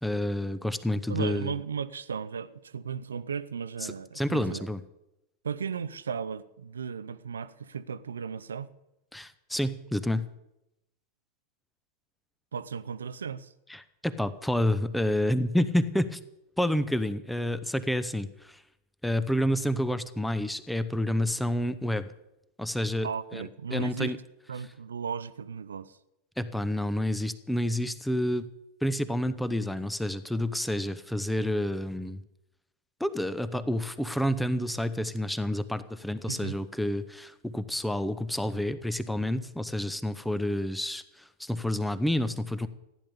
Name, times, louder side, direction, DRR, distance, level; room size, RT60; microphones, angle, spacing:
voice 1, 0.0-1.5 4.1-4.8 9.1-10.3 13.7-16.2 16.6-18.6 19.0-22.1 22.6-24.2 26.4-28.5 28.8-32.2 33.0-42.7, left 1 dB, 5° left, 0.8 m, -29 dB
voice 2, 1.1-4.7 5.4-8.7 12.5-13.5 23.0-24.1 24.5-26.0 36.3-36.6, right 6 dB, 70° right, 0.6 m, -35 dB
15.0 x 10.0 x 6.9 m
figure-of-eight pair, 90°, 0 cm